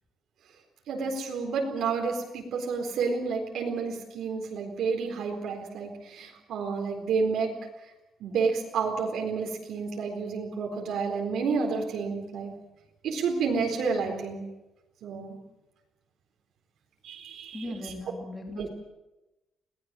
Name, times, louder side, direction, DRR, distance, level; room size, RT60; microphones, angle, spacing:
voice 1, 0.9-7.6 8.2-12.5 13.0-14.5 15.0-15.4 17.0-17.9 18.6-18.7, right 5 dB, 70° right, 0 dB, 4.1 m, -30 dB
voice 2, 17.5-18.7, left 1 dB, 10° left, 2 dB, 2.8 m, -38 dB
22.0 x 18.5 x 7.7 m, 0.99 s
cardioid pair, 170°, 0 cm